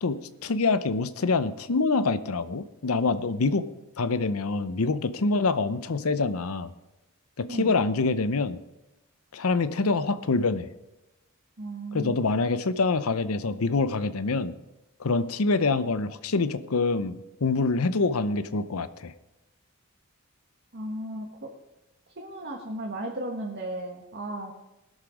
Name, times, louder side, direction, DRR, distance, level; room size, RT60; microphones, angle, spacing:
voice 1, 0.0-3.7 4.0-6.7 7.4-8.6 9.3-10.7 11.9-14.5 15.0-19.1, left 3 dB, 85° left, 13 dB, 0.7 m, -26 dB
voice 2, 11.6-12.3 20.7-21.5 22.2-24.6, right 1 dB, 50° right, 0 dB, 1.4 m, -35 dB
19.5 x 6.6 x 5.0 m, 1.0 s
head